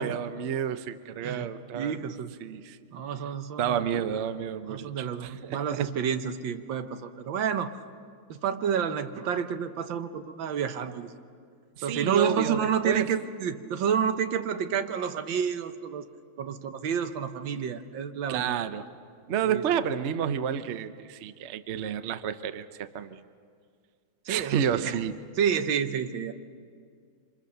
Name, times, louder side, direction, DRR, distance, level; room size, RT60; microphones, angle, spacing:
voice 1, 0.0-2.0 2.4-2.8 3.6-5.9 11.8-13.1 18.3-18.9 19.3-23.2 24.3-25.2, right 8 dB, 85° right, 12 dB, 0.6 m, -30 dB
voice 2, 1.2-2.3 2.9-4.0 4.7-7.7 8.3-11.1 11.8-16.1 16.4-18.6 19.4-19.6 24.3-24.9 25.4-26.3, right 7 dB, 70° right, 9 dB, 1.6 m, -29 dB
27.0 x 25.5 x 6.7 m, 2.2 s
omnidirectional pair, 2.3 m